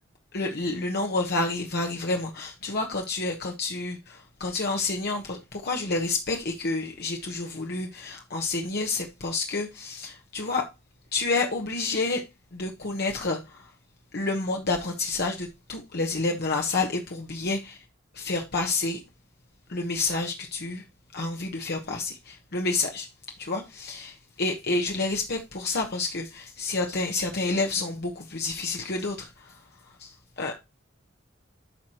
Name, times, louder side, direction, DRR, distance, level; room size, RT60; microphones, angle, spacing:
voice 1, 0.3-10.6 11.1-12.2 12.5-13.4 14.1-17.8 18.1-19.0 19.7-20.8 21.1-23.1 23.4-29.5 30.0-30.1 30.4-30.5, left 3 dB, 55° left, 1.1 m, -29 dB
12.5 x 4.7 x 2.9 m
head